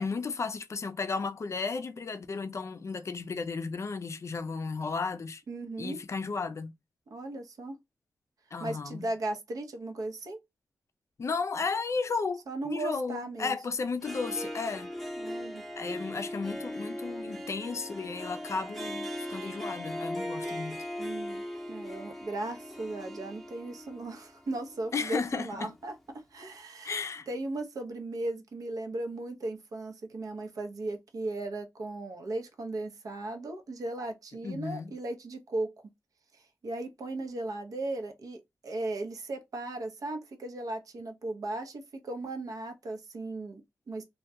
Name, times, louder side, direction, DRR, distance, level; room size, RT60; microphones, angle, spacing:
voice 1, 0.0-5.4 5.8-6.7 8.5-9.1 11.2-14.9 15.8-20.8 24.9-25.7 26.8-27.3 34.4-34.9, left 4 dB, 50° left, 0.4 m, -34 dB
voice 2, 5.5-6.0 7.1-7.8 8.6-10.4 12.5-13.6 15.2-15.6 21.0-26.9 27.3-35.7 36.3-44.0, right 2 dB, 70° right, 0.7 m, -37 dB
Harp, 13.9-25.8, equal, 5° left, 0.7 m, -39 dB
2.2 x 2.2 x 2.7 m
cardioid pair, 60°, 6 cm